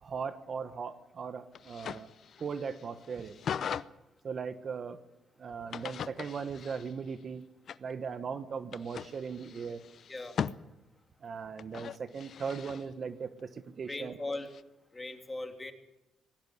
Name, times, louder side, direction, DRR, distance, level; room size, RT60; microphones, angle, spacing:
voice 1, 0.0-2.1 2.4-3.3 4.2-5.0 5.4-7.4 7.8-9.8 11.2-14.2, right 6 dB, 50° right, 11 dB, 1.3 m, -38 dB
sound 1, 1.5-3.9 5.7-7.1 7.7-7.9 8.7-10.6 11.6-12.8 14.3-14.6, left 8 dB, 60° left, 0.7 m, -40 dB
voice 2, 13.9-14.5 14.9-15.7, left 2 dB, 20° left, 5 dB, 2.9 m, -38 dB
19.5 x 17.5 x 8.4 m, 0.93 s
cardioid pair, 90°, 0 cm